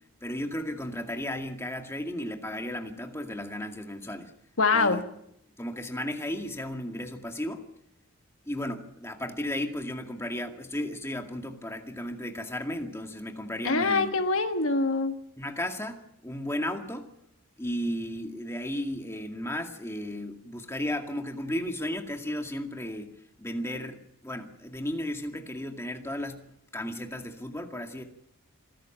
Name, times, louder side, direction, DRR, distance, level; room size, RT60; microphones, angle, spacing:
voice 1, 0.2-4.3 4.7-5.0 5.6-7.7 8.5-14.1 15.4-16.0 16.2-17.1 17.6-28.0, left 1 dB, 10° left, 4 dB, 2.2 m, -34 dB
voice 2, 4.6-5.0 13.6-15.2, left 3 dB, 65° left, 7 dB, 1.3 m, -24 dB
26.5 x 14.0 x 7.4 m, 0.77 s
head